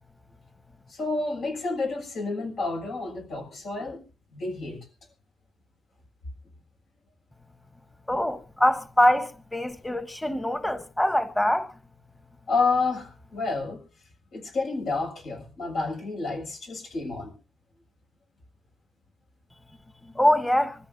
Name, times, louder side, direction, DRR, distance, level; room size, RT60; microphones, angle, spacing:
voice 1, 0.9-4.0 4.3-4.9 12.5-13.8 14.3-17.3, left 3 dB, 85° left, 6.8 m, -29 dB
voice 2, 8.1-11.7 20.2-20.7, left 1 dB, 10° left, 1.1 m, -23 dB
25.5 x 14.0 x 2.7 m
cardioid pair, 90°, 0 cm